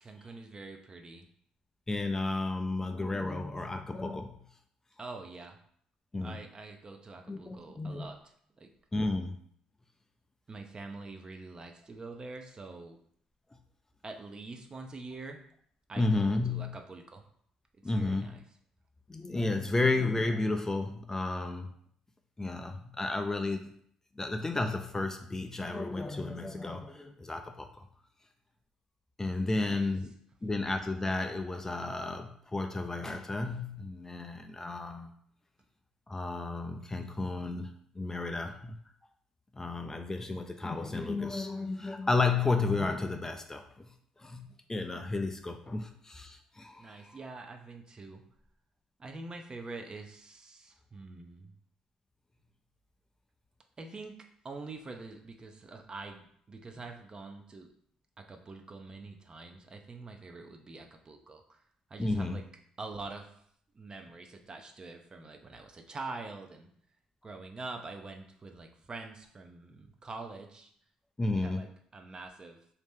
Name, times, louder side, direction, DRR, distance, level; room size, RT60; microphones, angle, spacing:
voice 1, 0.0-1.2 5.0-5.6 6.2-8.7 10.5-13.0 14.0-15.4 15.9-17.2 17.9-18.4 29.5-29.9 46.8-48.2 49.0-51.5 53.8-54.1 54.4-57.7 58.2-61.6 61.9-62.4 62.8-63.3 63.7-66.7 67.2-70.7 71.2-71.7 71.9-72.6, right 3 dB, 35° right, 4 dB, 0.6 m, -45 dB
voice 2, 1.9-4.3 6.1-6.4 7.3-8.1 8.9-9.4 16.0-16.8 17.8-18.4 19.1-21.7 22.4-23.7 24.2-27.8 29.2-30.1 30.4-35.1 36.1-38.8 39.5-43.9 44.2-47.1 62.0-62.4 71.2-71.6, left 3 dB, 20° left, 6 dB, 0.4 m, -32 dB
3.0 x 2.8 x 3.5 m, 0.63 s
hypercardioid pair, 55°, 3 cm